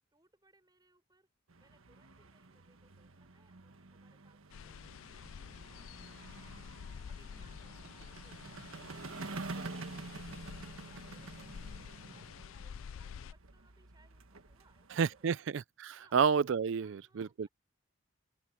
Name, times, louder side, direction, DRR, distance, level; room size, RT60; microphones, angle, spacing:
voice 1, 0.1-1.3 1.6-6.5 7.1-8.5 11.8-15.4 16.0-16.2 16.8-17.5, right 2 dB, 20° right, 6.6 m, -70 dB
sound 1, 1.5-15.3, right 3 dB, 85° right, 1.4 m, -48 dB
sound 2, 4.5-13.3, left 7 dB, 75° left, 0.4 m, -49 dB
voice 2, 15.0-17.5, right 6 dB, 65° right, 0.4 m, -30 dB
open air
head